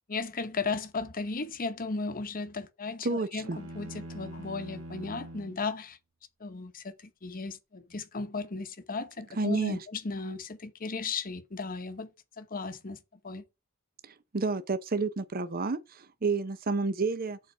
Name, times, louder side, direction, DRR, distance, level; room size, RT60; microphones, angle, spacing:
voice 1, 0.1-6.0 6.4-12.1 12.4-13.4, left 4 dB, 40° left, 0.9 m, -36 dB
voice 2, 3.0-3.6 9.4-9.8 14.0-17.4, right 3 dB, 45° right, 0.6 m, -30 dB
sound 1, 3.4-5.6, right 1 dB, 70° right, 1.3 m, -43 dB
7.0 x 4.2 x 5.5 m
head